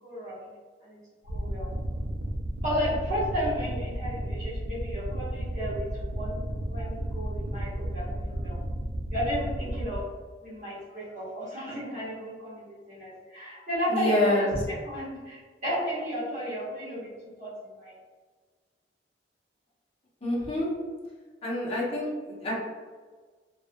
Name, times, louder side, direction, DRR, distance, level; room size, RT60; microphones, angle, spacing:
voice 1, 0.0-0.5 0.8-1.0 1.2-1.7 2.6-6.4 6.6-8.6 9.1-10.0 10.4-18.0, equal, 45° right, -9 dB, 0.9 m, -33 dB
sound 1, 1.2-10.0, equal, 80° right, 0.4 m, -33 dB
voice 2, 13.9-14.6 20.2-20.7 21.4-22.5, left 1 dB, 35° left, -4 dB, 0.6 m, -27 dB
2.4 x 2.1 x 2.5 m, 1.4 s
head